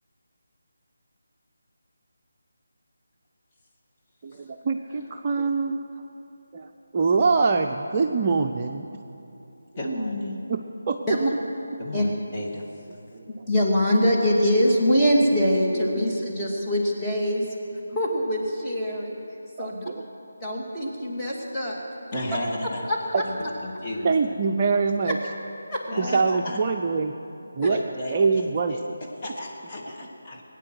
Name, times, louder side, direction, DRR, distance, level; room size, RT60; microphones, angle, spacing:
voice 1, 4.2-5.8 6.5-6.7 6.9-8.9 10.5-10.6 10.9-11.0 13.1-13.2 15.9-16.0 19.6-20.0 24.0-25.2 26.0-27.1 27.6-27.8 28.1-28.9, right 4 dB, 30° right, 3 dB, 0.6 m, -24 dB
voice 2, 9.8-10.4 11.8-12.9 22.1-22.8 23.2-24.3 25.9-26.6 27.6-30.4, left 1 dB, 25° left, -3 dB, 2.2 m, -33 dB
voice 3, 13.5-17.5 17.9-19.1 19.6-19.9 20.4-21.8 25.7-25.8 27.6-27.7, equal, 5° left, -7 dB, 2.4 m, -23 dB
21.0 x 9.6 x 6.2 m, 2.9 s
figure-of-eight pair, 155°, 0 cm